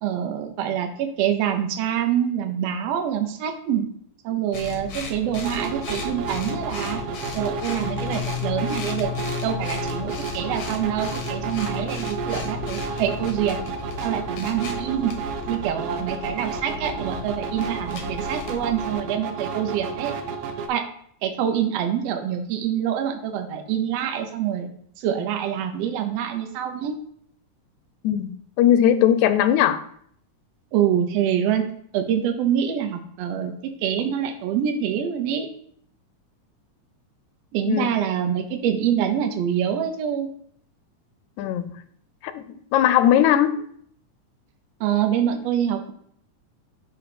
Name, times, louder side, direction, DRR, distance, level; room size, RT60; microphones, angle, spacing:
voice 1, 0.0-3.9 4.2-7.0 7.3-9.1 9.4-13.6 14.0-15.2 15.5-20.2 20.7-20.8 21.2-24.7 25.0-27.0 30.7-31.6 31.9-35.5 37.5-40.3 44.8-45.9, right 9 dB, 70° right, 1.7 m, -25 dB
sound 1, 4.5-19.0, left 6 dB, 60° left, 1.4 m, -34 dB
sound 2, 5.4-20.7, right 5 dB, 90° right, 1.2 m, -32 dB
voice 2, 28.6-29.8 37.7-37.9 41.4-41.7 42.2-43.6, left 10 dB, 80° left, 1.8 m, -19 dB
6.8 x 4.0 x 5.9 m
omnidirectional pair, 3.6 m